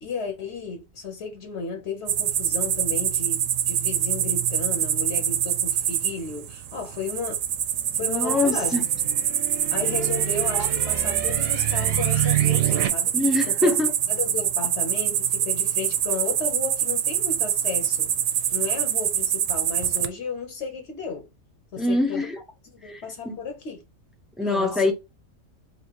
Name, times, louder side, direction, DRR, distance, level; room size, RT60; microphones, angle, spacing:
voice 1, 0.0-7.4 7.9-9.2 9.7-13.1 13.5-13.7 14.1-18.1 18.5-21.3 21.7-22.3 22.7-23.8 24.4-24.9, left 4 dB, 60° left, 1.1 m, -33 dB
sound 1, 2.1-20.1, right 10 dB, 85° right, 1.0 m, -25 dB
sound 2, 7.9-12.9, right 12 dB, 55° right, 0.8 m, -28 dB
voice 2, 8.0-8.8 10.5-10.7 13.1-13.9 21.8-22.4 22.8-23.3 24.4-24.9, left 2 dB, ahead, 0.5 m, -24 dB
3.0 x 2.8 x 4.4 m
omnidirectional pair, 1.3 m